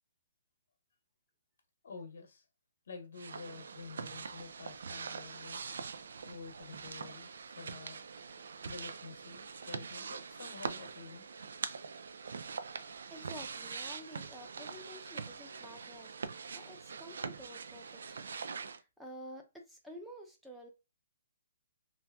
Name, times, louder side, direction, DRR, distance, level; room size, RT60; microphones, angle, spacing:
voice 1, 1.8-2.4 2.9-5.6 6.2-8.1 8.7-11.3, left 4 dB, 65° left, 1.0 m, -49 dB
sound 1, 3.1-18.8, right 5 dB, 75° right, 0.3 m, -43 dB
voice 2, 13.1-16.1 16.5-20.7, equal, ahead, 0.6 m, -51 dB
2.7 x 2.2 x 3.4 m
hypercardioid pair, 155°, 0 cm